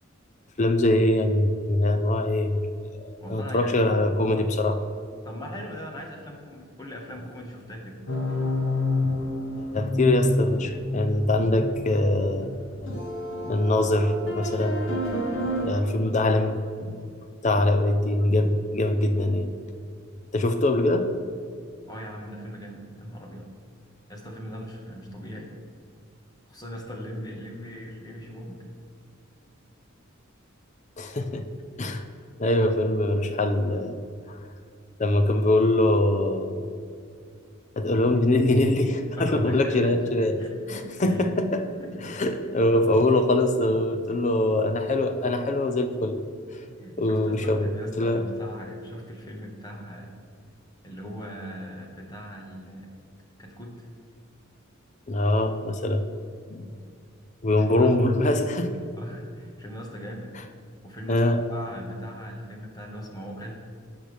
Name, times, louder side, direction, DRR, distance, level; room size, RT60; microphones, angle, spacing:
voice 1, 0.6-2.6 2.9-4.8 9.0-9.2 9.6-12.5 12.8-12.9 13.4-14.8 15.6-17.0 17.4-19.5 20.3-21.1 31.0-31.5 31.8-32.0 32.4-34.0 35.0-36.7 37.8-41.7 42.0-46.2 47.0-47.7 48.0-48.2 55.1-56.1 56.5-56.7 57.4-58.8 61.1-61.4, left 1 dB, 35° left, 8 dB, 0.6 m, -23 dB
voice 2, 3.2-4.1 5.2-8.0 21.8-23.5 24.1-25.6 26.5-28.7 39.2-41.2 41.7-42.0 46.8-50.2 50.8-52.9 53.4-53.9 57.5-57.9 58.9-60.4 60.8-63.7, equal, 20° left, 0 dB, 1.5 m, -40 dB
sound 1, 8.1-15.7, left 1 dB, 80° left, 2.3 m, -29 dB
17.0 x 6.0 x 3.4 m, 2.3 s
head